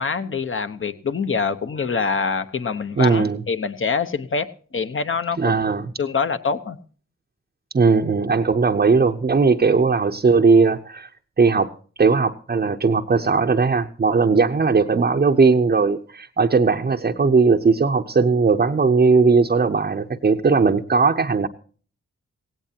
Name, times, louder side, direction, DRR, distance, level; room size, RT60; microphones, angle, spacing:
voice 1, 0.0-5.6 6.0-6.8, left 5 dB, 45° left, 10 dB, 1.0 m, -25 dB
voice 2, 3.0-3.4 5.4-5.9 7.7-11.1 11.4-11.7 12.0-21.5, right 4 dB, 30° right, 2 dB, 0.8 m, -18 dB
17.0 x 17.0 x 2.9 m, 0.42 s
cardioid pair, 65°, 29 cm